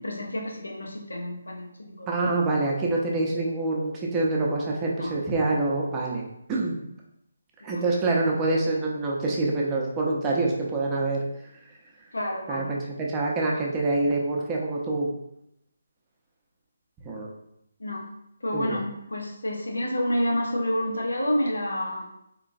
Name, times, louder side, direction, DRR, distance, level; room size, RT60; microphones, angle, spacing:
voice 1, 0.0-2.1 5.0-5.1 7.6-7.8 12.1-12.7 17.8-18.1 18.4-22.1, equal, 85° left, 0 dB, 0.7 m, -29 dB
voice 2, 2.1-6.8 7.6-11.2 12.5-15.1 17.0-17.3 18.5-18.8, right 2 dB, 15° right, -2 dB, 0.6 m, -26 dB
3.7 x 3.0 x 2.5 m, 0.80 s
figure-of-eight pair, 155°, 0 cm